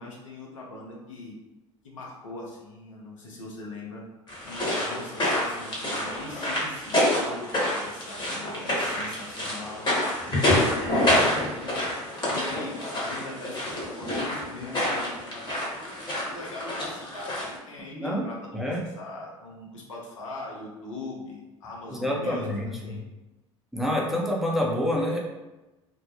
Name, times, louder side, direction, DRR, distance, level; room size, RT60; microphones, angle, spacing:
voice 1, 0.0-1.3 1.8-4.0 4.4-11.9 12.3-23.0, left 2 dB, 80° left, -2 dB, 0.6 m, -41 dB
sound 1, 4.3-17.6, left 1 dB, 30° left, 1.0 m, -27 dB
voice 2, 18.5-18.9 21.9-23.0 23.7-25.2, left 1 dB, ahead, -3 dB, 0.6 m, -27 dB
2.1 x 2.0 x 2.8 m, 1.0 s
figure-of-eight pair, 70°, 16 cm